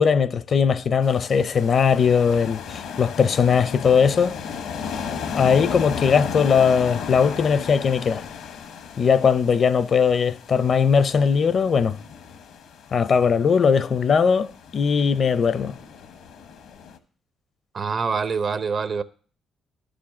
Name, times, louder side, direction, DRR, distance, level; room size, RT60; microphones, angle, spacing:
voice 1, 0.0-4.4 5.3-8.2 9.0-12.0 12.9-14.5 14.7-15.7, left 6 dB, 55° left, 0.5 m, -19 dB
sound 1, 1.0-17.0, left 6 dB, 80° left, 0.9 m, -35 dB
voice 2, 17.7-19.0, right 5 dB, 50° right, 0.7 m, -25 dB
11.5 x 5.1 x 7.2 m
supercardioid pair, 65°, 0 cm